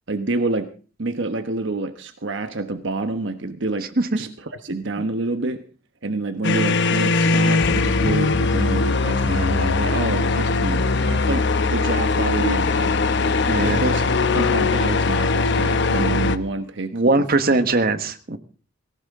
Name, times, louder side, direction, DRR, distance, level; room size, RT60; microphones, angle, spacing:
voice 1, 0.1-0.7 1.0-5.6 6.0-13.0 13.6-14.1 14.3-17.6, right 2 dB, 65° right, 9 dB, 1.1 m, -28 dB
sound 1, 6.4-16.4, left 3 dB, 65° left, 1.0 m, -20 dB
voice 2, 13.4-13.8 16.9-18.4, right 2 dB, 50° right, 9 dB, 1.4 m, -20 dB
18.5 x 17.5 x 3.7 m, 0.37 s
head